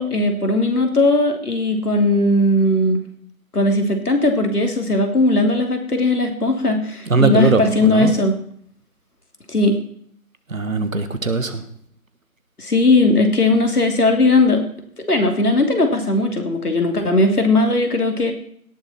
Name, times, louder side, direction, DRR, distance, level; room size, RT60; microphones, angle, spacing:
voice 1, 0.0-3.0 3.5-8.4 9.5-9.8 12.6-14.6 15.1-18.3, left 2 dB, 75° left, 4 dB, 3.0 m, -18 dB
voice 2, 7.0-8.2 10.5-11.7, right 3 dB, 60° right, 10 dB, 1.6 m, -20 dB
17.5 x 7.3 x 4.4 m, 0.62 s
figure-of-eight pair, 175°, 45 cm